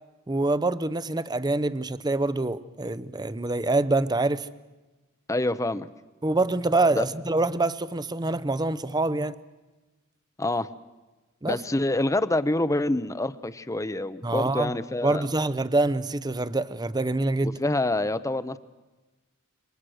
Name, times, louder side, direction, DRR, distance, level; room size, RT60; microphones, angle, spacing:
voice 1, 0.3-4.5 6.2-9.3 11.4-11.6 14.2-14.7 15.0-17.6, right 2 dB, 20° right, 0.7 m, -25 dB
voice 2, 5.3-5.9 6.9-7.0 10.4-10.7 11.5-15.2 17.4-18.6, left 2 dB, 15° left, 0.8 m, -26 dB
28.0 x 24.0 x 6.4 m
head